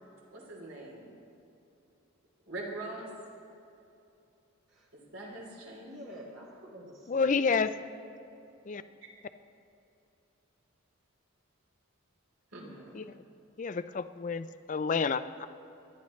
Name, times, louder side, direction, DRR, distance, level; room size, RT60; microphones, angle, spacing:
voice 1, 0.3-1.1 2.5-3.1 4.9-6.0 12.5-12.7, right 2 dB, 80° right, -3 dB, 3.3 m, -42 dB
voice 2, 5.8-7.6 12.6-13.0, equal, 60° right, -4 dB, 1.7 m, -48 dB
voice 3, 7.1-7.7 8.7-8.8 12.9-13.1 13.6-15.5, left 5 dB, 35° left, 12 dB, 0.4 m, -29 dB
24.5 x 11.0 x 3.2 m, 2.7 s
head